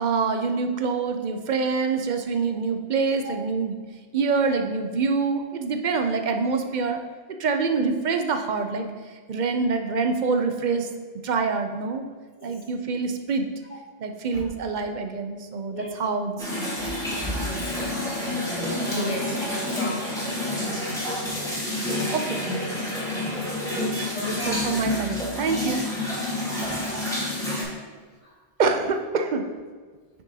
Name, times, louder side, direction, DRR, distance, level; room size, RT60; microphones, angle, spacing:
voice 1, 0.0-3.7 4.1-7.0 7.4-8.9 9.3-10.9 11.2-12.0 12.4-13.5 14.0-16.5 18.7-19.2 22.1-22.4 23.1-23.3 23.6-26.1 28.6-29.5, right 4 dB, 55° right, 6 dB, 0.5 m, -26 dB
Pee flush handwash, 16.4-27.6, left 1 dB, 5° left, 1.4 m, -29 dB
voice 2, 17.0-17.8 18.2-20.1 23.1-23.6 24.1-24.8 28.2-28.4, left 1 dB, 30° left, -3 dB, 1.2 m, -34 dB
6.5 x 6.0 x 2.8 m, 1.5 s
omnidirectional pair, 1.1 m